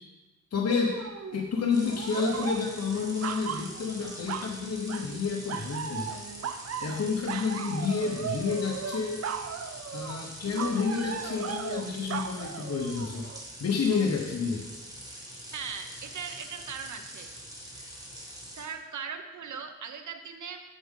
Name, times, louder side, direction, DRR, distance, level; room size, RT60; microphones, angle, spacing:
voice 1, 0.5-1.0 1.3-6.1 6.8-9.2 9.9-13.3 13.6-14.7, left 5 dB, 60° left, -1 dB, 1.0 m, -29 dB
sound 1, 0.7-1.5 1.8-4.6 4.9-5.2 5.5-13.4 13.9-14.1, right 7 dB, 60° right, 0.5 m, -37 dB
sound 2, 1.7-18.6, equal, 10° right, 2.1 m, -44 dB
voice 2, 15.5-17.3 17.7-17.9 18.6-20.6, right 6 dB, 85° right, 7 dB, 0.9 m, -39 dB
10.0 x 7.2 x 3.7 m, 1.2 s
wide cardioid pair, 100°, 29 cm